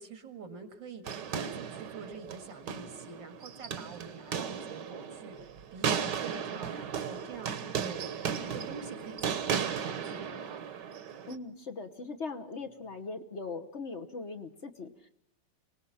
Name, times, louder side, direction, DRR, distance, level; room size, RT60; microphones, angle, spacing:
voice 1, 0.0-10.7, right 4 dB, 90° right, 7 dB, 2.7 m, -46 dB
sound 1, 1.1-11.4, right 7 dB, 65° right, 1.7 m, -36 dB
voice 2, 11.3-15.1, left 4 dB, 45° left, 5 dB, 1.2 m, -40 dB
25.0 x 19.0 x 5.7 m, 0.72 s
omnidirectional pair, 2.0 m